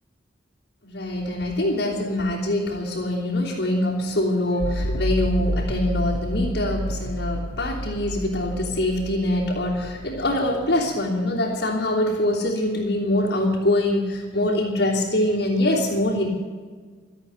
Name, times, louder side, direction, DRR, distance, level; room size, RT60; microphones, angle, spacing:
voice 1, 0.8-16.3, left 1 dB, 60° left, -4 dB, 3.3 m, -24 dB
sound 1, 4.6-10.6, equal, 80° left, 1.2 m, -29 dB
15.0 x 8.3 x 9.6 m, 1.5 s
head